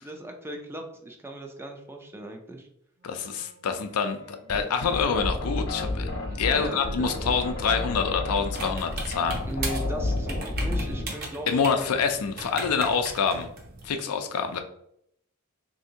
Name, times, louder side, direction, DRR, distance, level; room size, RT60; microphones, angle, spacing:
voice 1, 0.0-2.7 6.5-7.3 9.4-12.0, right 1 dB, 10° right, 3 dB, 0.3 m, -38 dB
voice 2, 3.0-6.1 6.4-9.4 11.5-13.5 13.8-14.6, left 6 dB, 85° left, 7 dB, 0.4 m, -26 dB
Wind instrument woodwind instrument, 3.0-11.3, left 1 dB, 85° right, 0.9 m, -50 dB
sound 1, 4.5-11.1, left 2 dB, 55° left, 0.9 m, -30 dB
sound 2, 8.5-13.9, right 3 dB, 45° right, 0.7 m, -38 dB
3.3 x 2.7 x 2.7 m, 0.72 s
head